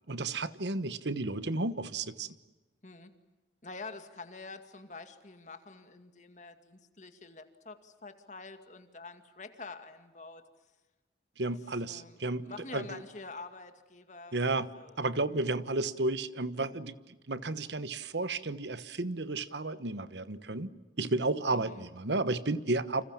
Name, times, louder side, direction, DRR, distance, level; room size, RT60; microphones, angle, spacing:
voice 1, 0.1-2.3 11.4-13.0 14.3-14.7 15.0-20.7 21.0-23.0, right 2 dB, 80° right, 14 dB, 1.2 m, -32 dB
voice 2, 3.6-10.4 11.5-11.6 11.8-14.4 14.7-15.0 21.5-21.8, left 3 dB, 40° left, 8 dB, 2.3 m, -47 dB
29.5 x 27.5 x 7.3 m, 1.2 s
head